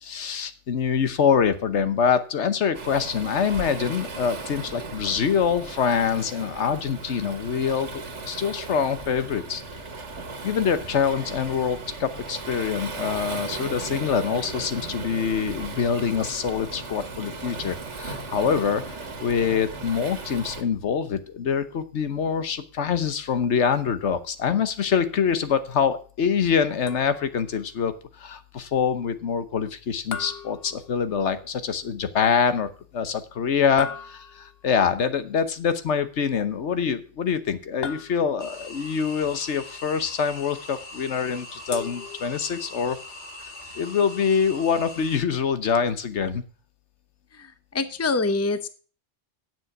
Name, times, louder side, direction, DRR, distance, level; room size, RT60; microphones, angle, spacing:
voice 1, 0.0-9.6 10.4-43.0 43.7-46.4, left 7 dB, 75° left, 12 dB, 1.3 m, -25 dB
Waves surf, 2.7-20.6, right 3 dB, 85° right, 1.9 m, -36 dB
sound 1, 26.9-27.5 30.1-31.4 33.8-34.7 37.8-38.6 41.7-42.7, left 7 dB, 60° left, 1.0 m, -38 dB
sound 2, 38.4-45.2, left 2 dB, 40° left, 2.2 m, -41 dB
voice 2, 47.3-48.7, left 3 dB, 15° left, 11 dB, 0.7 m, -26 dB
9.5 x 7.5 x 5.9 m, 0.39 s
omnidirectional pair, 1.2 m